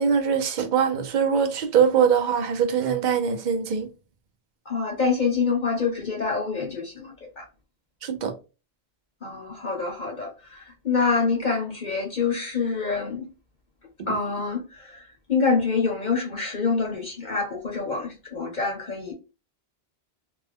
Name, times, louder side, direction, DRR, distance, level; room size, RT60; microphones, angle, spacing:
voice 1, 0.0-3.9 8.0-8.3, right 7 dB, 55° right, 0.6 m, -22 dB
voice 2, 4.7-7.5 9.2-13.3 14.1-19.1, left 4 dB, 50° left, 0.8 m, -26 dB
3.4 x 2.1 x 3.4 m
omnidirectional pair, 1.1 m